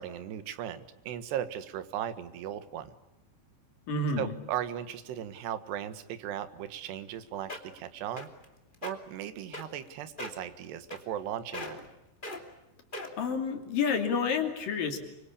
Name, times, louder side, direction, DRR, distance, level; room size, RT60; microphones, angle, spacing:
voice 1, 0.0-2.9 4.2-8.3 8.8-11.8, right 10 dB, 70° right, 12 dB, 3.4 m, -37 dB
voice 2, 3.9-4.3 13.2-15.0, left 5 dB, 50° left, 5 dB, 4.2 m, -29 dB
sound 1, 7.2-7.3 7.5-7.8 8.2-8.4 8.7-8.9 9.5-9.9 10.2-10.4 10.9-11.3 11.5-11.9 12.2-12.4 12.9-13.3 13.9-14.0, left 2 dB, 15° left, 1.8 m, -39 dB
26.0 x 24.5 x 8.5 m, 0.93 s
omnidirectional pair, 5.2 m